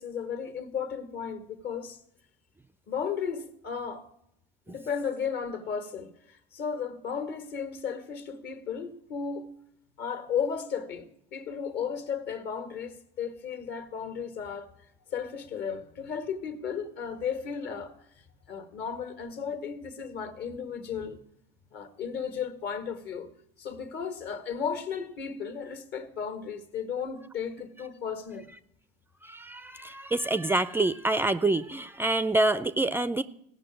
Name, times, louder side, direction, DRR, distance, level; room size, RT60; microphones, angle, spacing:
voice 1, 0.0-2.0 2.9-4.1 4.7-9.5 10.0-14.7 15.1-17.9 18.5-21.2 21.7-23.3 23.6-28.5, left 7 dB, 55° left, 1.9 m, -34 dB
voice 2, 29.2-33.2, right 2 dB, 10° right, 0.4 m, -26 dB
16.0 x 6.2 x 9.0 m
supercardioid pair, 100°, 21 cm